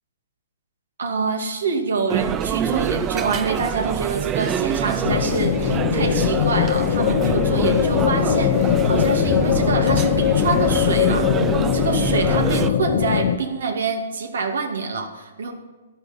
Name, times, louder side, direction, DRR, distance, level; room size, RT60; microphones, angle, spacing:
voice 1, 1.0-11.3 11.7-15.5, right 4 dB, 85° right, 5 dB, 2.3 m, -26 dB
sound 1, 2.1-12.7, right 9 dB, 20° right, 0.4 m, -26 dB
sound 2, 5.0-13.4, left 11 dB, 50° left, 0.6 m, -20 dB
13.0 x 11.5 x 5.3 m, 1.3 s
hypercardioid pair, 150°, 0 cm